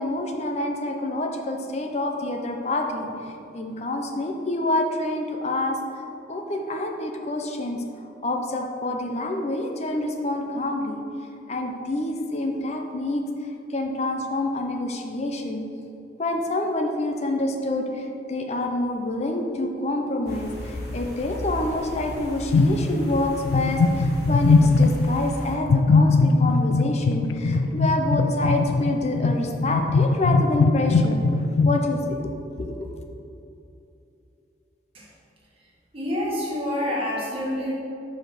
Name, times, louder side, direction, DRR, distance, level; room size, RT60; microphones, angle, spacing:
voice 1, 0.0-3.1 3.5-5.8 6.3-7.8 8.2-11.0 11.5-13.2 13.7-15.6 16.2-31.2 31.6-32.2 32.6-32.9, left 2 dB, 35° left, 3 dB, 0.6 m, -27 dB
sound 1, 20.3-25.5, left 1 dB, 60° left, 1.4 m, -36 dB
sound 2, 22.5-23.2 23.4-25.2 25.6-31.8, left 3 dB, 85° left, 0.3 m, -20 dB
voice 2, 35.9-37.7, left 1 dB, 30° right, -5 dB, 1.5 m, -27 dB
5.1 x 5.1 x 5.9 m, 2.7 s
head